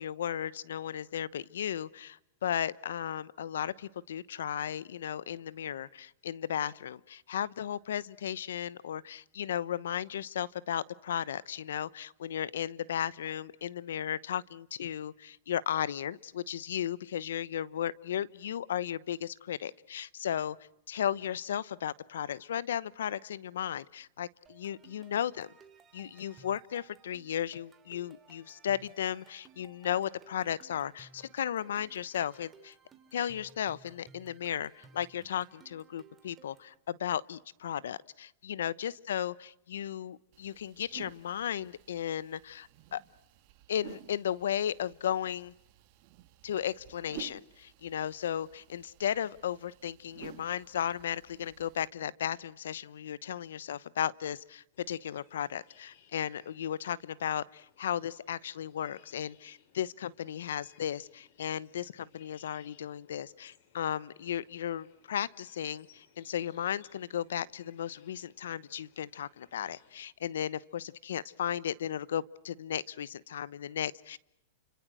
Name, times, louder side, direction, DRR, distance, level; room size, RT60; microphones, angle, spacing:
voice 1, 0.0-20.6 20.9-25.5 25.9-32.7 33.1-43.0 43.7-45.5 46.4-74.2, left 10 dB, 80° left, 20 dB, 1.0 m, -35 dB
sound 1, 24.5-36.8, right 5 dB, 20° right, 2.7 m, -59 dB
sound 2, 40.3-51.9, right 16 dB, 50° right, 2.1 m, -53 dB
sound 3, 54.7-70.0, left 8 dB, 60° left, 4.3 m, -65 dB
30.0 x 26.0 x 6.3 m, 0.78 s
hypercardioid pair, 135°, 0 cm